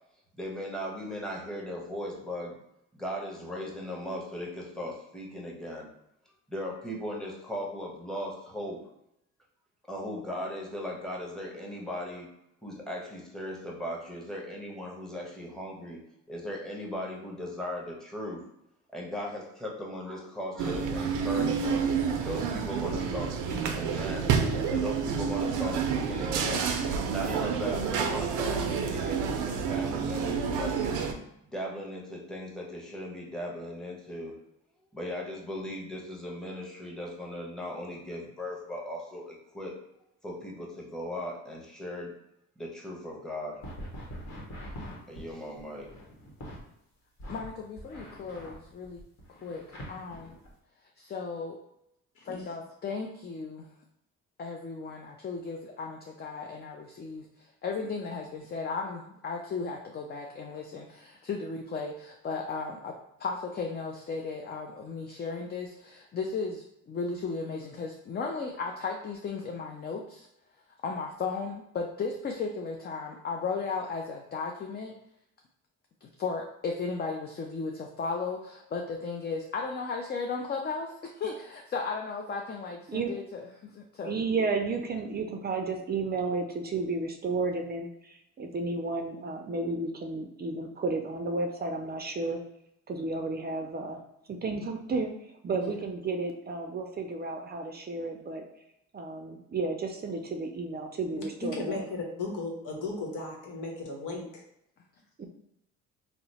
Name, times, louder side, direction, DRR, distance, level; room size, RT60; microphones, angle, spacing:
voice 1, 0.4-2.6 2.9-5.9 6.5-8.8 9.9-12.3 12.6-16.0 16.3-18.4 18.9-21.8 22.2-24.3 24.7-26.7 27.1-31.0 31.5-34.4 34.9-39.7 40.2-42.1 42.6-43.6 44.3-44.7 45.1-45.9, equal, ahead, -2 dB, 0.9 m, -38 dB
sound 1, 20.6-31.1, right 6 dB, 90° right, 0.5 m, -29 dB
sound 2, 43.6-46.6 47.2-50.5, equal, 60° left, 1.2 m, -44 dB
voice 2, 47.3-49.0 49.4-50.3 51.0-51.6 52.2-53.7 54.4-70.3 70.8-75.0 76.0-84.1 95.7-95.8, left 4 dB, 35° left, 2 dB, 0.4 m, -35 dB
voice 3, 84.0-92.4 92.9-94.0 94.3-95.1 95.4-98.4 98.9-101.9 105.2-105.3, right 3 dB, 35° right, 4 dB, 0.4 m, -32 dB
voice 4, 101.5-104.4, left 3 dB, 85° left, 0 dB, 0.9 m, -36 dB
2.9 x 2.0 x 4.0 m, 0.80 s
cardioid pair, 90°, 30 cm